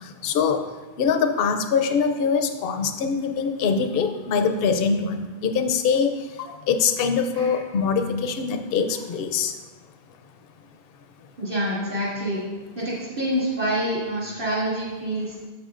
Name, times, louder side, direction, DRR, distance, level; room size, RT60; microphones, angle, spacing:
voice 1, 0.2-0.6 1.0-6.1 6.7-9.5, left 6 dB, 65° left, 6 dB, 0.8 m, -23 dB
voice 2, 11.4-12.4 12.7-15.3, right 1 dB, 60° right, -8 dB, 2.5 m, -27 dB
10.5 x 7.1 x 2.5 m, 1.2 s
omnidirectional pair, 1.1 m